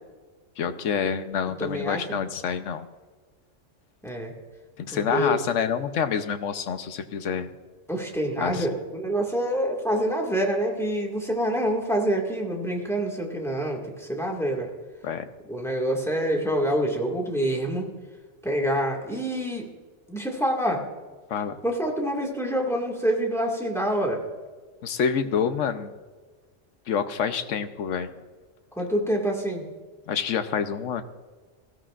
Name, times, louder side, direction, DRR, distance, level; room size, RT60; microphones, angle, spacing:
voice 1, 0.6-2.9 4.8-7.5 8.4-8.7 15.0-15.3 21.3-21.6 24.8-25.9 26.9-28.1 30.1-31.0, left 7 dB, 75° left, 10 dB, 1.1 m, -27 dB
voice 2, 1.6-2.2 4.0-4.3 4.9-5.4 7.9-14.7 15.5-17.9 18.4-19.7 20.1-20.8 21.6-24.2 28.8-29.7, equal, ahead, 0 dB, 1.9 m, -26 dB
19.0 x 15.0 x 2.5 m, 1.4 s
omnidirectional pair, 1.3 m